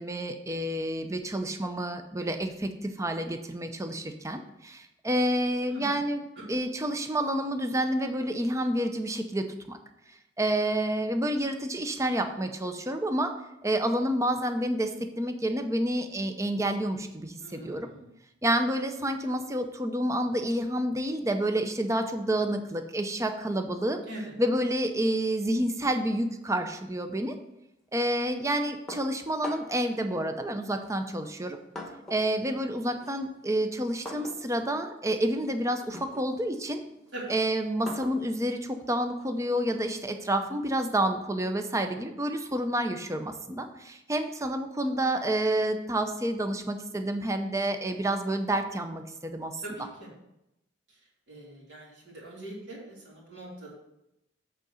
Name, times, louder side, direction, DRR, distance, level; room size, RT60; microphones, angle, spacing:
voice 1, 0.0-9.8 10.4-13.3 13.6-17.9 18.4-24.0 24.4-27.4 27.9-31.6 32.1-36.8 37.3-49.6, right 1 dB, 15° right, 7 dB, 0.6 m, -29 dB
voice 2, 5.6-6.0 17.4-18.1 24.1-24.2 37.1-37.2 49.6-50.1 51.3-53.7, right 1 dB, 65° right, -5 dB, 2.9 m, -42 dB
sound 1, 28.9-29.9 30.8-32.3 32.7-40.0, left 1 dB, 5° left, 1.2 m, -45 dB
8.1 x 3.8 x 6.4 m, 0.87 s
head